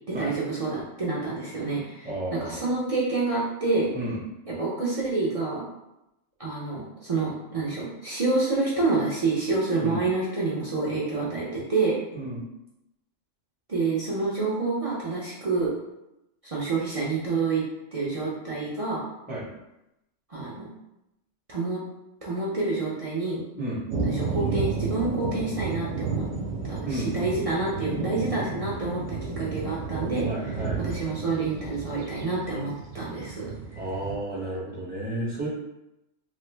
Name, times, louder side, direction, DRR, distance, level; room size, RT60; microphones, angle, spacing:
voice 1, 0.1-3.9 4.5-5.7 6.4-12.0 13.7-15.7 16.4-17.6 17.9-19.0 20.3-20.7 21.5-21.8 22.2-23.4 24.0-26.3 26.7-30.3 30.8-33.5, right 3 dB, 45° right, -7 dB, 0.4 m, -28 dB
voice 2, 2.0-2.7 3.9-4.2 9.8-10.0 12.1-12.4 19.3-19.4 23.6-23.8 26.8-27.1 30.2-30.8 33.7-35.5, right 1 dB, 10° right, -6 dB, 0.7 m, -32 dB
sound 1, 23.9-34.2, right 4 dB, 90° right, 1.0 m, -32 dB
3.1 x 2.0 x 3.2 m, 0.89 s
omnidirectional pair, 1.3 m